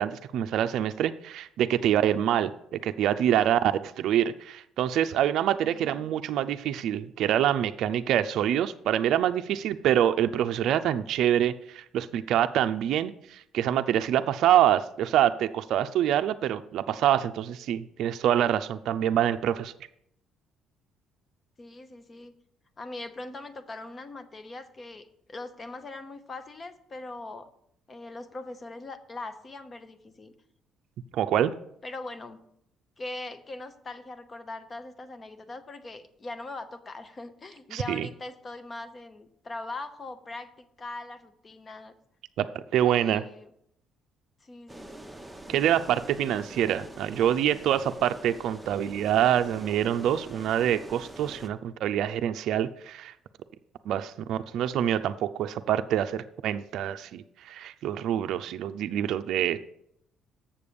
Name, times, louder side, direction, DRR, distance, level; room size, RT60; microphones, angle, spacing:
voice 1, 0.0-2.5 2.8-19.7 31.1-31.5 37.7-38.1 42.4-42.5 42.7-43.2 45.5-53.1 53.9-59.6, right 10 dB, 70° right, 9 dB, 0.4 m, -26 dB
voice 2, 5.7-6.2 21.6-22.3 22.8-27.5 27.9-30.3 31.8-32.4 33.0-41.9 42.8-43.5 44.4-45.1, left 2 dB, 35° left, 10 dB, 0.9 m, -41 dB
sound 1, 44.7-51.5, right 1 dB, 5° right, 0.8 m, -44 dB
7.2 x 6.8 x 5.1 m, 0.74 s
cardioid pair, 85°, 0 cm